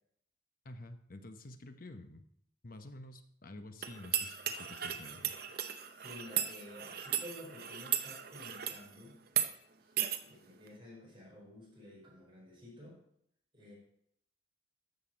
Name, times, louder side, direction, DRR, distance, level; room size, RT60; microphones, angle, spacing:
voice 1, 0.6-2.2 2.6-5.3, left 1 dB, 45° left, 8 dB, 0.9 m, -49 dB
sound 1, 3.8-8.8 9.3-9.5 10.0-10.2, right 10 dB, 50° right, 0.8 m, -36 dB
voice 2, 5.9-9.2 9.8-10.0 10.2-13.0 13.5-13.7, left 1 dB, 25° right, -4 dB, 5.1 m, -52 dB
13.5 x 6.6 x 5.2 m, 0.72 s
head